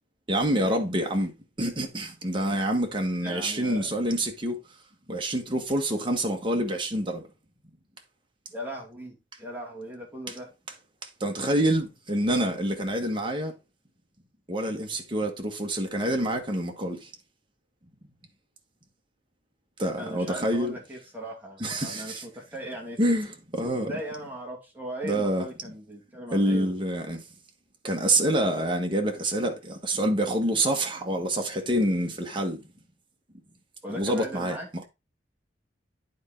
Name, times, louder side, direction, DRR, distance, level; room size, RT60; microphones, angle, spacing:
voice 1, 0.3-1.3 1.6-4.6 5.1-7.3 11.2-13.5 14.5-17.1 19.8-20.7 21.6-22.2 23.0-23.9 25.0-25.5 26.3-27.2 27.8-32.6 33.9-34.8, right 1 dB, 25° right, 1.4 m, -27 dB
voice 2, 3.2-3.9 8.5-10.5 20.0-23.0 23.9-26.7 33.8-34.7, right 1 dB, 10° right, 2.3 m, -38 dB
9.4 x 4.4 x 3.9 m
head